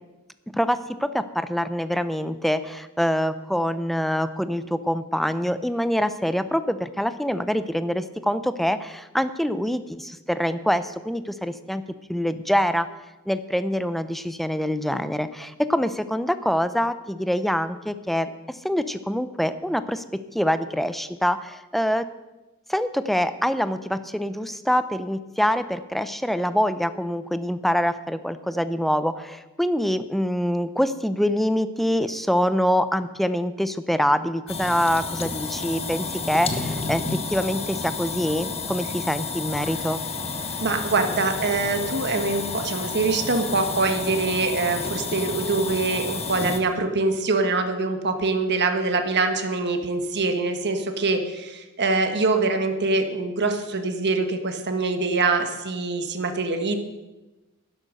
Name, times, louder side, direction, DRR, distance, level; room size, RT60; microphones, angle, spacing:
voice 1, 0.5-11.8 12.1-12.9 13.3-20.0 20.3-22.1 22.7-37.0 37.3-40.0, equal, ahead, 12 dB, 0.5 m, -25 dB
sound 1, 34.5-46.6, left 4 dB, 30° left, 1.2 m, -31 dB
voice 2, 40.6-56.8, right 3 dB, 50° right, 6 dB, 1.4 m, -24 dB
11.0 x 11.0 x 6.6 m, 1.1 s
head